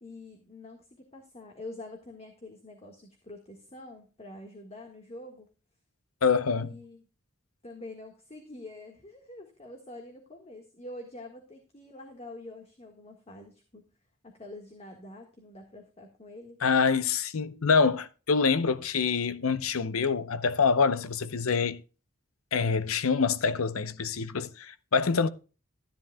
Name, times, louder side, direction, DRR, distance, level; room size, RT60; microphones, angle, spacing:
voice 1, 0.0-5.5 6.6-7.0 7.6-13.9 14.2-16.6, left 2 dB, 30° left, 1.6 m, -46 dB
voice 2, 6.2-6.8 16.6-21.8 22.5-25.3, left 5 dB, 85° left, 0.8 m, -26 dB
13.5 x 10.5 x 2.2 m
head